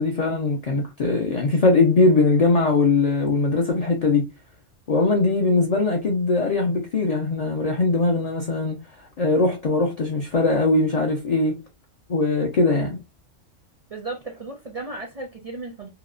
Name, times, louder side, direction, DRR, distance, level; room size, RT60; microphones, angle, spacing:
voice 1, 0.0-4.3 4.9-8.8 9.2-11.6 12.1-13.0, left 3 dB, 70° left, 0.3 m, -21 dB
voice 2, 13.9-15.9, right 3 dB, 50° right, 0.4 m, -35 dB
2.8 x 2.0 x 2.3 m
omnidirectional pair, 1.3 m